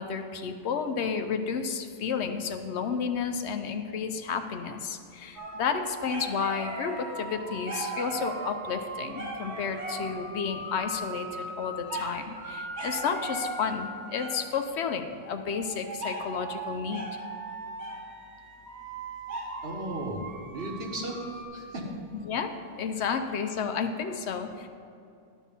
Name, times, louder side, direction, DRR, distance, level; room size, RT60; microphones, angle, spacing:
voice 1, 0.0-17.1 22.1-22.5 22.8-24.7, left 6 dB, 85° left, 7 dB, 1.0 m, -31 dB
sound 1, 5.4-14.6 15.5-21.4, right 2 dB, 80° right, 1.9 m, -38 dB
voice 2, 19.6-20.2 20.5-21.9 23.0-23.2, right 1 dB, 65° right, -1 dB, 1.8 m, -36 dB
11.5 x 6.2 x 5.4 m, 2.6 s
omnidirectional pair, 1.1 m